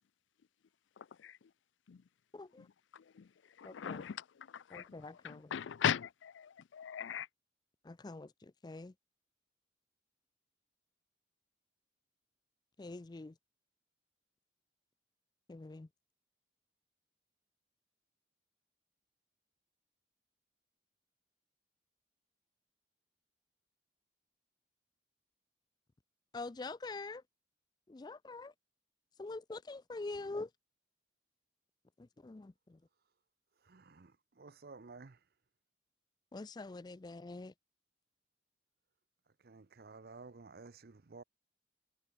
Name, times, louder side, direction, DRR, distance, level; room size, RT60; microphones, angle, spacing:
voice 1, 1.0-1.5 1.9-2.1 2.6-2.7 2.9-7.3, left 8 dB, 90° left, 0.4 m, -40 dB
voice 2, 2.3-2.7 3.6-4.0 4.7-5.5 7.8-8.9 12.8-13.4 15.5-15.9 26.3-27.2 27.9-28.5 29.2-30.5 32.0-32.8 36.3-37.5, left 3 dB, 25° left, 0.4 m, -45 dB
voice 3, 33.6-35.3 39.3-41.2, right 4 dB, 55° right, 0.7 m, -54 dB
head